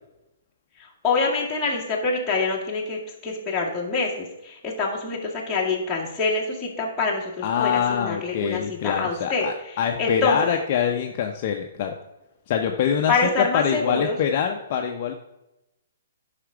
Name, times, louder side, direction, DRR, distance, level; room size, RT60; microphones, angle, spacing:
voice 1, 0.8-10.5 13.1-14.2, left 4 dB, 5° left, -7 dB, 2.1 m, -26 dB
voice 2, 7.4-11.9 12.5-13.1 13.4-15.1, left 8 dB, 35° left, 3 dB, 0.7 m, -24 dB
9.9 x 5.9 x 5.0 m, 0.94 s
hypercardioid pair, 160°, 0 cm